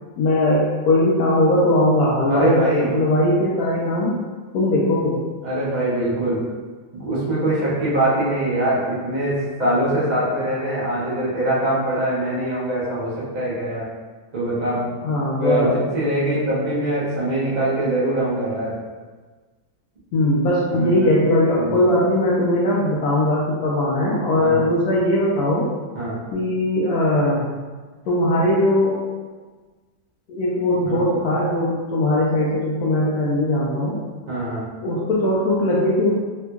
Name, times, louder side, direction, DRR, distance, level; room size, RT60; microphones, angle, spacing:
voice 1, 0.2-2.6 2.9-4.2 4.5-5.2 15.0-15.7 20.1-25.7 26.3-27.4 28.1-29.0 30.3-34.0 34.8-36.2, left 1 dB, 75° left, -6 dB, 0.8 m, -19 dB
voice 2, 2.3-2.9 5.4-6.4 6.9-13.8 14.3-14.9 15.4-18.8 20.7-21.1 21.6-21.8 24.4-24.6 25.9-26.2 30.8-31.2 34.3-34.7, right 1 dB, 45° right, -9 dB, 0.5 m, -23 dB
3.4 x 2.8 x 2.2 m, 1.4 s
omnidirectional pair, 2.1 m